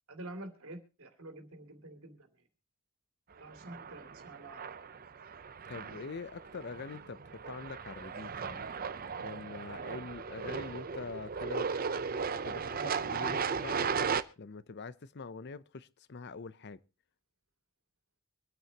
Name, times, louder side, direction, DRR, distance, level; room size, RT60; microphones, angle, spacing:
voice 1, 0.1-2.2 3.4-4.6, right 1 dB, 70° right, 2.8 m, -47 dB
sound 1, 3.5-14.2, right 5 dB, 40° right, 0.6 m, -36 dB
voice 2, 5.7-8.7 9.2-11.7 12.4-14.0 14.4-16.8, left 4 dB, 50° left, 0.6 m, -44 dB
25.0 x 9.2 x 2.9 m
head